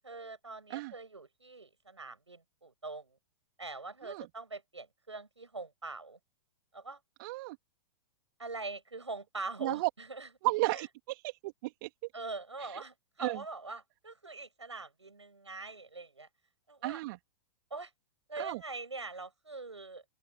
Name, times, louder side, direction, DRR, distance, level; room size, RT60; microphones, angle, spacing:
voice 1, 0.0-3.2 3.6-6.2 6.7-7.0 8.4-10.3 12.1-16.3 16.7-17.0 17.7-17.9 18.3-20.0, right 3 dB, 90° right, 7.2 m, -43 dB
voice 2, 7.2-7.6 9.6-9.9 10.4-11.9 12.6-12.8 13.2-13.4 16.8-17.2 18.3-18.6, right 20 dB, 50° right, 3.5 m, -34 dB
open air
figure-of-eight pair, 105°, 14 cm